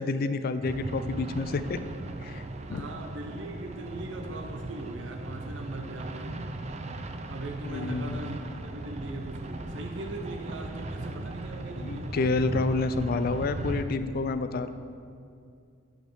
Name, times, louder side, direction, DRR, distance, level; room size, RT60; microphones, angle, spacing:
voice 1, 0.0-1.8 2.2-2.4 2.7-2.9 7.7-8.2 11.8-14.7, left 3 dB, 50° left, 11 dB, 0.4 m, -29 dB
sound 1, 0.6-13.8, right 2 dB, 35° right, 0.5 m, -37 dB
voice 2, 2.7-6.5 7.3-8.4 8.6-12.1, right 1 dB, 70° right, 3 dB, 0.8 m, -40 dB
9.0 x 5.1 x 6.2 m, 2.3 s
head